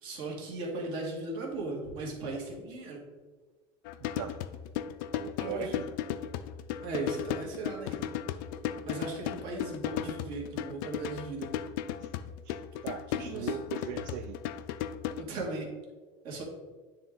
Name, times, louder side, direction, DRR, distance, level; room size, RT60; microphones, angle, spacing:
voice 1, 0.0-3.0 5.4-5.7 6.8-8.1 8.8-11.5 13.1-13.5 15.1-15.7 16.2-16.4, right 2 dB, 50° right, 0 dB, 1.6 m, -37 dB
sound 1, 3.8-15.2, left 10 dB, 85° left, 0.4 m, -35 dB
voice 2, 4.0-4.4 5.1-5.9 12.0-12.1 12.4-12.6 12.8-14.4, right 9 dB, 80° right, 8 dB, 0.4 m, -39 dB
9.0 x 3.5 x 3.7 m, 1.3 s
cardioid pair, 170°, 11 cm